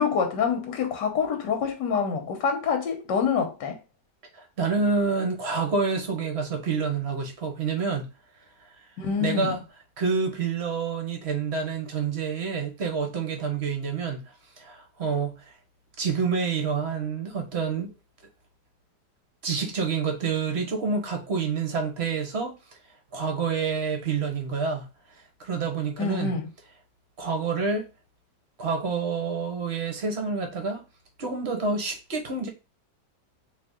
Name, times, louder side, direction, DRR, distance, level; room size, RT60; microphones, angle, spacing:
voice 1, 0.0-3.8 9.0-9.5 26.0-26.4, left 6 dB, 80° left, 1.6 m, -26 dB
voice 2, 4.3-8.1 9.2-9.6 10.0-14.2 14.6-15.5 16.0-17.9 19.4-22.6 23.1-24.9 25.4-26.3 27.2-27.9 28.6-30.8 31.2-32.5, right 5 dB, 45° right, 1.0 m, -28 dB
4.0 x 3.2 x 3.6 m
omnidirectional pair, 1.8 m